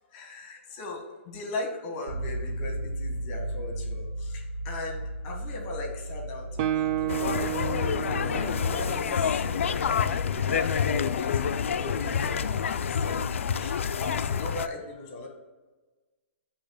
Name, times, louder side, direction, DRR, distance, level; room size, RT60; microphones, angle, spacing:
voice 1, 0.1-7.5 8.2-15.3, left 2 dB, 35° left, 2 dB, 1.3 m, -38 dB
sound 1, 2.1-14.0, right 1 dB, 75° right, 1.5 m, -37 dB
Guitar, 6.6-10.2, right 14 dB, 35° right, 0.3 m, -32 dB
sound 2, 7.1-14.7, left 7 dB, 75° left, 0.3 m, -28 dB
8.6 x 2.9 x 4.7 m, 1.3 s
hypercardioid pair, 145°, 7 cm